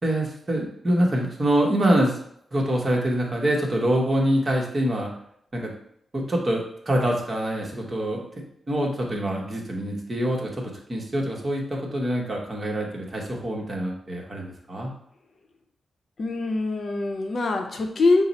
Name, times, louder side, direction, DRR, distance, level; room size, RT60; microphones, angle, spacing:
voice 1, 0.0-2.2 2.5-5.1 5.5-5.7 6.1-8.3 8.7-14.9, right 1 dB, 30° right, -1 dB, 1.0 m, -25 dB
voice 2, 16.2-18.2, left 3 dB, 50° left, 4 dB, 0.7 m, -23 dB
5.7 x 2.0 x 4.0 m, 0.71 s
wide cardioid pair, 115°, 0 cm